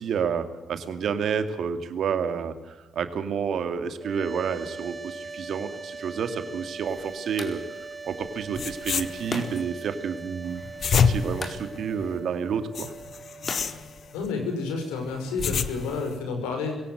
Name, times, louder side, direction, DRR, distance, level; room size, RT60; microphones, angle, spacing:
voice 1, 0.0-12.9, right 6 dB, 65° right, 9 dB, 2.2 m, -30 dB
sound 1, 4.0-15.1, right 4 dB, 20° right, 2.8 m, -41 dB
sound 2, 6.6-14.7, left 3 dB, 40° left, 4.5 m, -42 dB
sound 3, 8.2-8.3 8.5-9.6 10.5-12.2 12.7-14.3 15.1-16.1, left 6 dB, 55° left, 1.3 m, -28 dB
voice 2, 14.1-16.8, left 4 dB, 80° left, 4 dB, 5.6 m, -30 dB
22.5 x 17.5 x 7.9 m, 1.1 s
hypercardioid pair, 45°, 0 cm